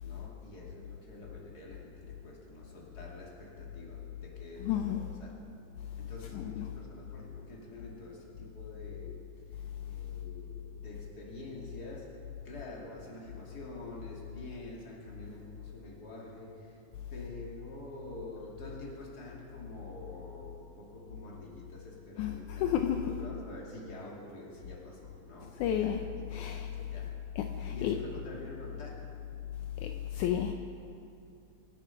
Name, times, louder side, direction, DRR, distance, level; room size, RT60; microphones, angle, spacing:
voice 1, 0.0-5.4 6.0-12.2 12.4-16.8 17.1-26.0 26.4-27.1 27.6-29.1, left 1 dB, 30° left, -3 dB, 2.6 m, -47 dB
voice 2, 4.6-5.1 6.3-6.7 22.2-23.1 25.6-26.0 26.3-26.7 27.4-28.0 29.8-30.5, left 10 dB, 80° left, 5 dB, 1.8 m, -32 dB
25.0 x 9.2 x 5.8 m, 2.6 s
omnidirectional pair, 4.2 m